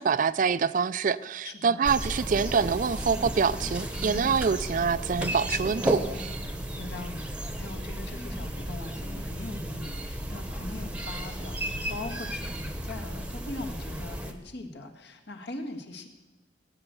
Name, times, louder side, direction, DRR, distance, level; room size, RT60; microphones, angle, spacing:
voice 1, 0.0-6.4, right 5 dB, 45° right, 16 dB, 0.4 m, -26 dB
voice 2, 1.4-1.8 4.1-4.3 6.5-16.1, left 2 dB, 60° left, 4 dB, 1.7 m, -41 dB
sound 1, 1.8-14.3, equal, 5° right, 1.0 m, -34 dB
18.5 x 8.1 x 8.1 m, 1.2 s
head